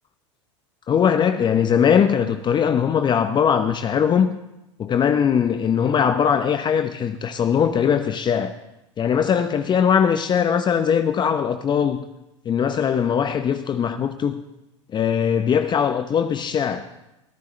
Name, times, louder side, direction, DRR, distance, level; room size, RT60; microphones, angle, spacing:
voice 1, 0.9-4.4 4.8-8.5 9.0-12.0 12.4-14.4 14.9-16.8, left 7 dB, 30° left, 0.8 m, -20 dB
22.5 x 15.0 x 3.3 m
hypercardioid pair, 85°, 16 cm